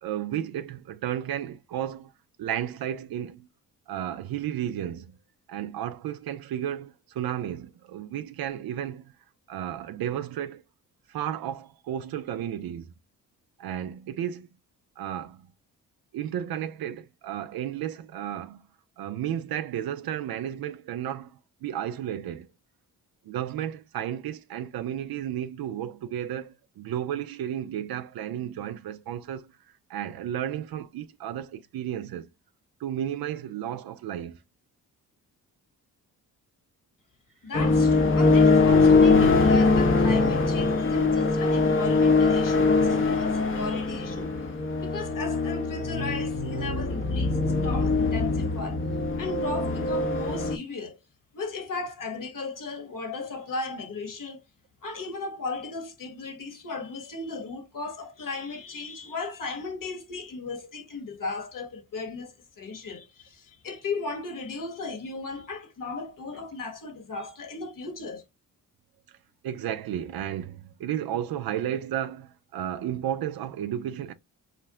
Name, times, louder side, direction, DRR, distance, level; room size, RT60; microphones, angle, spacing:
voice 1, 0.0-2.1 2.4-3.5 3.9-5.2 5.5-9.1 9.5-10.6 11.1-12.9 13.6-14.5 15.0-15.5 16.1-18.6 19.0-22.5 23.2-29.5 29.9-32.3 32.8-34.4 69.4-74.1, right 10 dB, 60° right, 0.5 m, -33 dB
voice 2, 37.4-44.3 44.8-48.8 49.2-51.0 51.3-54.4 54.8-68.2, left 3 dB, 50° left, 1.2 m, -36 dB
sound 1, 37.5-50.6, left 3 dB, 30° left, 0.6 m, -22 dB
2.5 x 2.1 x 3.5 m
supercardioid pair, 50°, 41 cm